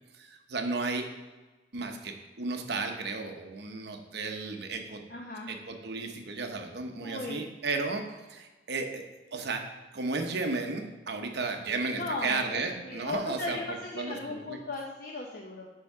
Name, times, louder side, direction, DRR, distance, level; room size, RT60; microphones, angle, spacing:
voice 1, 0.1-1.1 1.7-5.0 5.5-9.0 9.3-13.6 13.9-14.6, right 3 dB, 65° right, 4 dB, 0.9 m, -34 dB
voice 2, 5.1-5.5 7.0-7.4 11.9-15.7, left 2 dB, 50° left, 0 dB, 0.8 m, -37 dB
8.3 x 3.6 x 5.5 m, 1.2 s
head